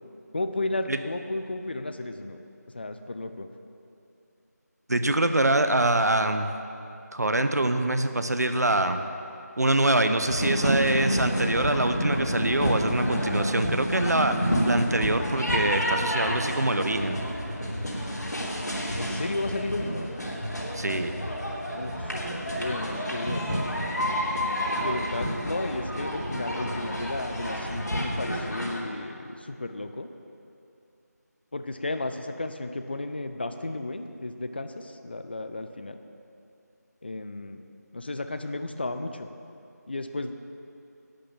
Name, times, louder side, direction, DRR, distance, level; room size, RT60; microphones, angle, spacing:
voice 1, 0.3-2.4 2.7-3.5 18.9-20.1 21.7-23.7 24.7-30.1 31.5-36.0 37.0-37.6 37.9-39.3 39.9-40.3, left 2 dB, 35° left, 8 dB, 0.6 m, -33 dB
voice 2, 4.9-6.5 7.1-9.0 9.6-14.4 14.6-17.2 20.7-21.2, right 2 dB, 65° right, 8 dB, 1.0 m, -24 dB
sound 1, 10.3-28.8, equal, 80° left, 3.3 m, -29 dB
11.5 x 8.9 x 7.3 m, 2.7 s
figure-of-eight pair, 170°, 9 cm